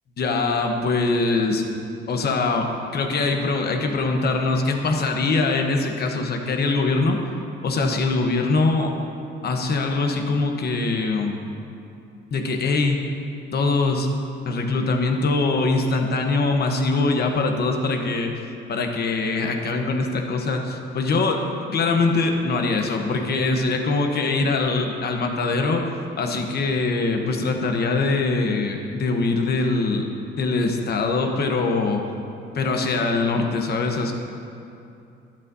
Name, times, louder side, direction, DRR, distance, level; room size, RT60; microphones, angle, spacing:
voice 1, 0.2-1.7 2.1-7.2 7.6-8.9 9.4-11.4 12.3-13.0 13.5-14.1 14.5-18.3 18.7-25.8 26.2-30.1 30.4-32.0 32.5-34.1, left 3 dB, 55° left, 3 dB, 1.1 m, -22 dB
11.5 x 10.5 x 2.8 m, 2.7 s
cardioid pair, 110°, 20 cm